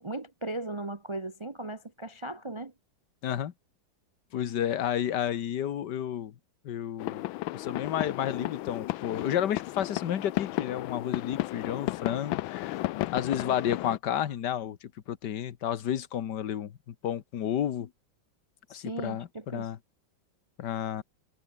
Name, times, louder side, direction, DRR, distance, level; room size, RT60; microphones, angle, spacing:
voice 1, 0.0-2.7 18.7-19.7, right 2 dB, 45° right, 0.4 m, -37 dB
voice 2, 3.2-3.5 4.3-6.3 6.7-12.8 13.1-17.9 18.7-19.8 20.6-21.0, left 10 dB, 60° left, 1.7 m, -31 dB
sound 1, 7.0-14.0, left 17 dB, 90° left, 1.4 m, -34 dB
omnidirectional pair, 2.1 m